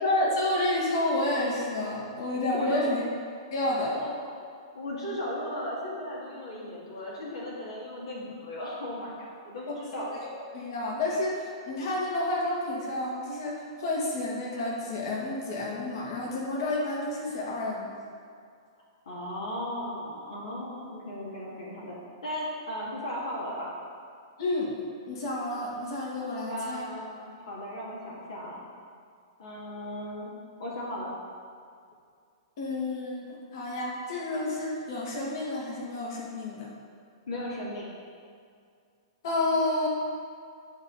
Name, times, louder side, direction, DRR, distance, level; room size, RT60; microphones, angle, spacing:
voice 1, 0.0-3.0 3.5-4.0 9.7-9.8 10.5-17.9 24.4-24.7 25.1-26.9 32.6-36.7 39.2-39.9, left 2 dB, 60° left, -3 dB, 2.0 m, -30 dB
voice 2, 2.5-2.9 3.9-4.1 4.7-10.1 19.1-22.0 22.2-23.7 26.5-28.6 29.4-30.3 30.6-31.1 37.3-37.9, left 1 dB, 80° left, -5 dB, 1.9 m, -36 dB
10.5 x 5.3 x 3.9 m, 2.2 s
hypercardioid pair, 125°, 3 cm